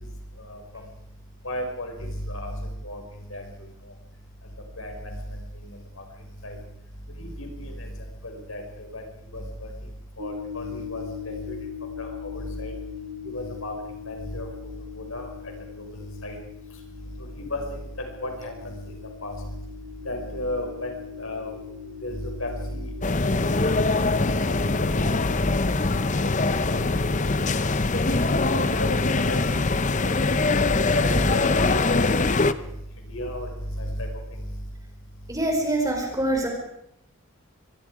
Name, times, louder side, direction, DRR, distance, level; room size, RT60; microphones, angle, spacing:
voice 1, 1.4-1.9 2.3-2.5 2.8-3.0 3.3-3.4 4.8-5.1 6.4-6.6 7.2-7.9 8.2-9.0 9.3-9.7 10.2-11.5 12.0-12.7 13.3-13.7 14.1-14.5 15.0-15.3 16.2-16.4 17.5-17.8 18.2-18.5 19.2-19.3 20.1-20.9 21.2-21.5 22.0-22.9 23.4-23.8 24.5-24.6 25.2-25.3 26.2-26.3 26.7-26.9 28.1-29.4 30.6-32.1 33.1-33.5 33.8-34.1, left 1 dB, 75° left, 3 dB, 5.7 m, -33 dB
sound 1, 10.2-27.6, left 6 dB, 70° right, 6.9 m, -41 dB
sound 2, 23.0-32.5, left 3 dB, 35° left, 0.7 m, -23 dB
voice 2, 35.3-36.5, right 1 dB, 15° right, 2 dB, 4.8 m, -24 dB
24.5 x 22.0 x 5.0 m, 0.79 s
head